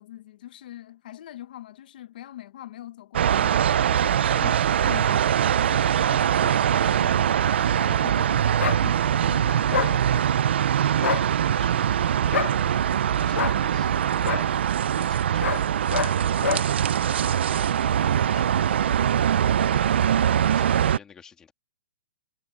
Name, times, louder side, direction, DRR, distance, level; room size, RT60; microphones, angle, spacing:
voice 1, 0.0-5.2 5.6-10.6, left 13 dB, 40° left, 1.1 m, -42 dB
sound 1, 3.1-21.0, right 9 dB, 50° right, 0.4 m, -22 dB
sound 2, 8.6-8.8 9.7-9.9 11.0-11.3 12.3-12.6 13.3-13.6 14.2-14.5 15.4-15.6 15.9-16.1 16.4-16.7, left 8 dB, 85° left, 0.8 m, -26 dB
voice 2, 11.5-21.5, left 7 dB, 10° left, 1.9 m, -50 dB
hypercardioid pair, 180°, 7 cm